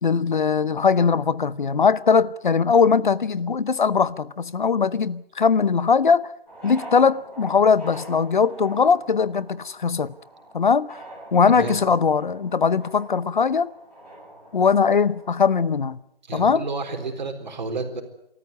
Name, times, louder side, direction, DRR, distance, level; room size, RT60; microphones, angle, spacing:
voice 1, 0.0-6.3 6.6-10.1 10.5-11.0 11.3-13.7 14.5-16.0 16.3-16.6, left 5 dB, 55° left, 0.9 m, -20 dB
sound 1, 6.5-15.5, right 1 dB, 5° left, 5.2 m, -44 dB
voice 2, 11.5-11.8 16.3-18.0, right 3 dB, 50° right, 3.9 m, -31 dB
28.0 x 14.0 x 9.5 m
hypercardioid pair, 175°, 30 cm